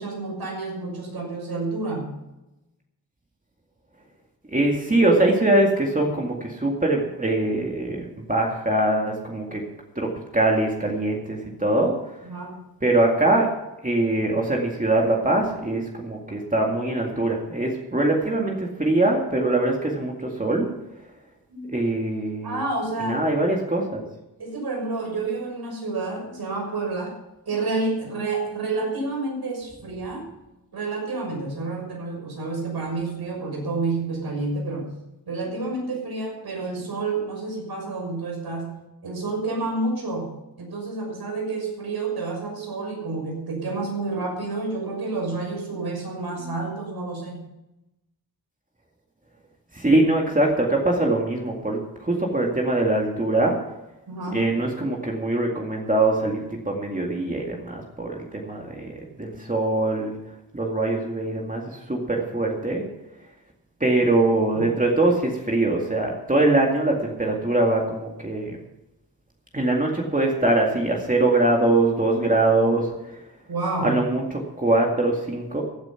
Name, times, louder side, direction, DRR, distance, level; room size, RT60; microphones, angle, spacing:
voice 1, 0.0-2.1 12.2-12.6 21.5-21.7 22.4-23.2 24.4-27.2 27.5-30.3 30.7-34.9 35.3-38.8 39.0-47.4 54.1-54.5 64.5-64.7 73.5-74.0, right 3 dB, 80° right, -1 dB, 6.3 m, -29 dB
voice 2, 4.5-9.6 10.0-11.9 12.8-13.5 13.8-20.7 21.7-22.6 23.1-24.0 49.7-53.6 54.3-60.2 60.5-62.9 63.8-68.6 69.5-72.9 73.8-75.6, right 2 dB, 20° right, -1 dB, 2.2 m, -22 dB
15.5 x 9.8 x 5.9 m, 0.94 s
wide cardioid pair, 120°, 37 cm